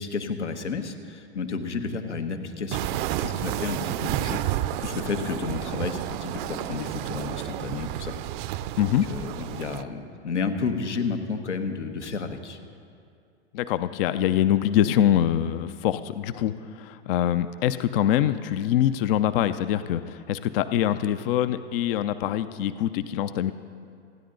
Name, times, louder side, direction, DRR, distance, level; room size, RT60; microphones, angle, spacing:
voice 1, 0.0-2.9 3.2-8.1 8.5-8.6 9.1-12.6, left 4 dB, 85° left, 6 dB, 1.4 m, -31 dB
sound 1, 2.7-9.8, right 13 dB, 45° right, 0.6 m, -31 dB
voice 2, 13.5-23.5, left 11 dB, 55° left, 12 dB, 0.7 m, -24 dB
29.5 x 10.0 x 3.9 m, 2.3 s
hypercardioid pair, 100°, 34 cm